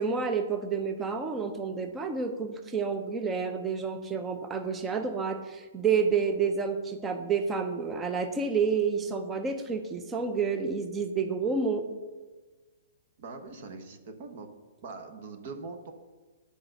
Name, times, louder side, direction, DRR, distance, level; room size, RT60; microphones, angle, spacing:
voice 1, 0.0-11.8, right 5 dB, 10° right, 7 dB, 0.6 m, -29 dB
voice 2, 13.2-14.5 14.8-15.9, right 4 dB, 45° right, 6 dB, 1.0 m, -42 dB
8.5 x 5.1 x 6.6 m, 1.3 s
hypercardioid pair, 165°, 0 cm